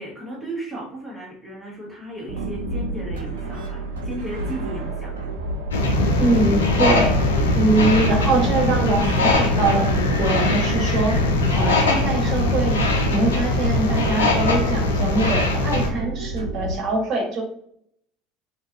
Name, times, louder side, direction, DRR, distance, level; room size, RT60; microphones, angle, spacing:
voice 1, 0.0-5.1, right 1 dB, 10° right, -4 dB, 0.9 m, -35 dB
sound 1, 2.3-16.7, right 2 dB, 80° right, 0.5 m, -30 dB
sound 2, 5.7-15.9, left 2 dB, 85° left, 0.4 m, -21 dB
voice 2, 6.2-7.2 7.5-12.8 13.1-17.4, right 2 dB, 50° right, 1 dB, 1.0 m, -23 dB
2.6 x 2.2 x 2.4 m, 0.66 s
hypercardioid pair, 70°, 0 cm